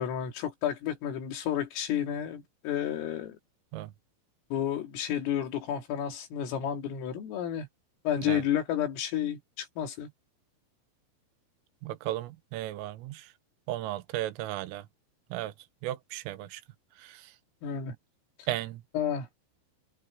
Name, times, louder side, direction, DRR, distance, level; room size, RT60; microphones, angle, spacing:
voice 1, 0.0-3.4 4.5-7.7 8.1-10.1 17.6-17.9 19.0-19.3, left 9 dB, 90° left, 5.5 m, -31 dB
voice 2, 11.8-13.3 13.7-14.8 15.3-15.5 15.8-16.6 17.0-17.2 18.5-18.8, right 15 dB, 85° right, 3.6 m, -35 dB
omnidirectional pair, 5.7 m